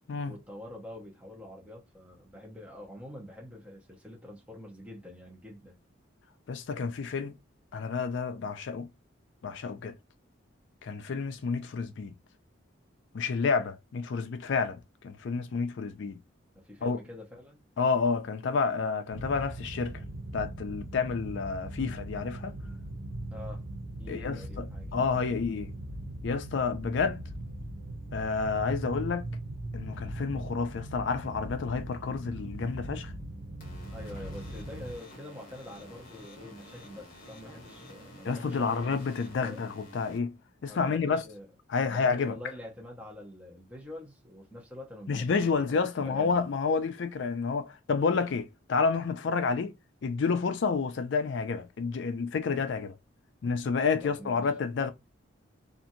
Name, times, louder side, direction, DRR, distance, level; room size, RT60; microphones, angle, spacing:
voice 1, 0.3-5.8 16.5-17.6 23.3-23.6 24.0-25.1 33.9-38.9 39.4-39.6 40.7-41.5 41.8-46.5 54.0-54.5, left 1 dB, 5° right, 0.8 m, -46 dB
voice 2, 6.5-7.3 7.7-8.9 9.4-9.9 10.8-12.1 13.1-16.2 16.8-17.0 17.8-19.9 20.3-22.5 24.1-24.6 24.9-25.7 26.2-27.2 28.1-29.3 29.7-33.1 38.2-40.3 40.6-41.2 41.7-42.4 45.1-49.7 50.0-52.9 53.4-54.9, left 5 dB, 65° left, 0.4 m, -29 dB
sound 1, 19.1-35.0, right 1 dB, 65° right, 0.7 m, -40 dB
sound 2, 33.6-40.2, left 1 dB, 45° left, 1.1 m, -50 dB
2.8 x 2.5 x 2.6 m
head